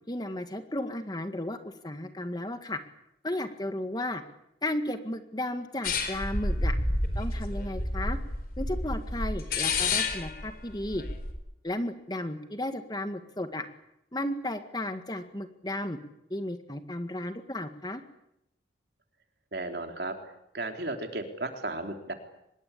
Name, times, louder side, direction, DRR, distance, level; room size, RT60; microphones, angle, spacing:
voice 1, 0.1-2.8 3.2-4.2 4.6-6.8 7.2-8.2 8.6-11.0 11.6-13.7 14.1-16.0 16.3-18.0, left 1 dB, 25° left, 8 dB, 1.9 m, -34 dB
sound 1, 5.8-11.3, left 2 dB, 55° left, 4.6 m, -30 dB
voice 2, 19.5-20.2 20.5-22.1, right 2 dB, 65° right, 4 dB, 3.7 m, -34 dB
25.0 x 21.5 x 8.6 m, 0.82 s
head